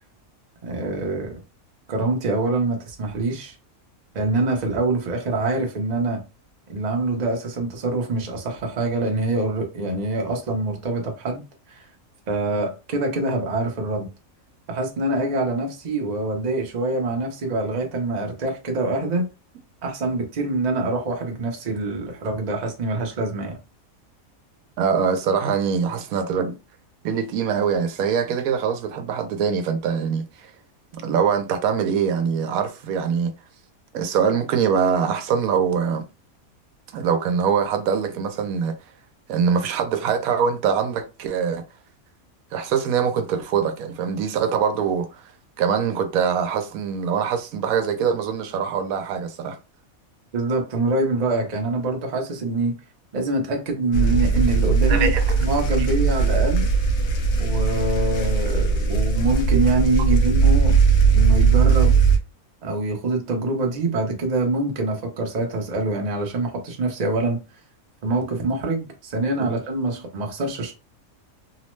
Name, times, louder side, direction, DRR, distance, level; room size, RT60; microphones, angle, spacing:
voice 1, 0.6-1.4 1.9-3.5 4.1-6.2 6.7-11.4 11.7-11.9 12.3-14.1 14.7-19.3 19.8-23.6 50.3-52.7 53.1-55.1 55.4-56.7 57.4-60.8 61.1-62.0 62.6-67.4 68.0-70.7, right 2 dB, 40° right, 0.6 m, -25 dB
voice 2, 24.8-26.5 27.0-30.5 30.9-33.3 33.9-36.1 36.9-38.7 39.3-41.6 42.5-45.2 45.6-49.6 54.9-55.4 69.4-69.5, right 7 dB, 85° right, 1.0 m, -23 dB
sound 1, 53.9-62.2, right 5 dB, 60° left, 0.9 m, -19 dB
2.9 x 2.0 x 3.0 m
omnidirectional pair, 1.5 m